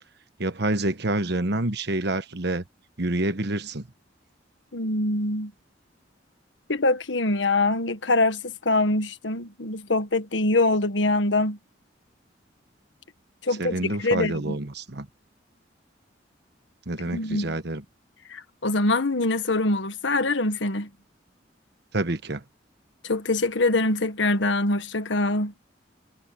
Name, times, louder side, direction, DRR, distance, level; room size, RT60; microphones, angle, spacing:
voice 1, 0.4-2.6 3.0-3.9 13.6-15.1 16.9-17.8 21.9-22.4, right 2 dB, 60° right, 1.3 m, -27 dB
voice 2, 4.7-5.5 6.7-11.6 13.4-14.6 17.1-17.5 18.3-20.9 23.0-25.5, left 2 dB, 75° left, 1.5 m, -24 dB
head